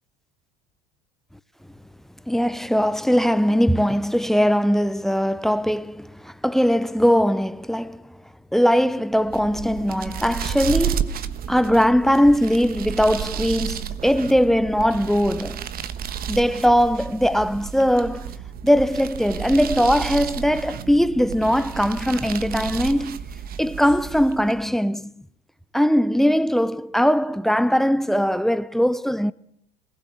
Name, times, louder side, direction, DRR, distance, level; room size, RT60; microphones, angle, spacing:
voice 1, 2.3-8.0 8.5-11.2 11.5-15.6 16.3-18.3 18.6-23.2 23.6-25.1 25.7-29.3, equal, ahead, 0.8 m, -20 dB
sound 1, 9.2-24.7, right 9 dB, 50° right, 1.3 m, -32 dB
20.0 x 18.5 x 7.7 m
hypercardioid pair, 80°, 20 cm